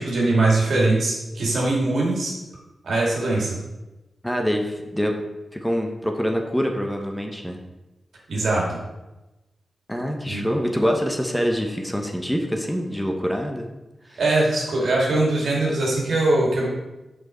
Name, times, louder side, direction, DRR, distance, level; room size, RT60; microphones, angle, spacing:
voice 1, 0.0-2.3 2.8-3.6 8.3-8.6 10.3-10.4 14.2-16.7, right 2 dB, 80° right, -3 dB, 2.1 m, -21 dB
voice 2, 4.2-5.1 5.5-7.6 9.9-13.7 14.1-14.2, equal, 5° left, 3 dB, 1.1 m, -25 dB
6.1 x 5.3 x 4.4 m, 1.0 s
supercardioid pair, 40°, 0 cm